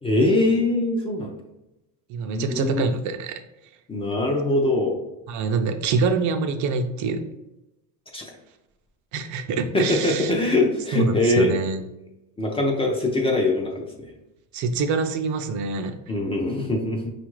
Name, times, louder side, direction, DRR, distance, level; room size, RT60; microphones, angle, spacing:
voice 1, 0.0-1.3 2.3-2.9 3.9-5.0 8.1-8.2 9.7-11.5 12.4-14.1 16.1-17.1, left 2 dB, 15° left, 0 dB, 0.4 m, -22 dB
voice 2, 2.1-3.4 5.3-7.2 9.1-10.3 10.9-11.8 14.5-16.0, right 4 dB, 55° right, 7 dB, 0.5 m, -25 dB
5.1 x 2.4 x 3.0 m, 0.94 s
cardioid pair, 150°, 37 cm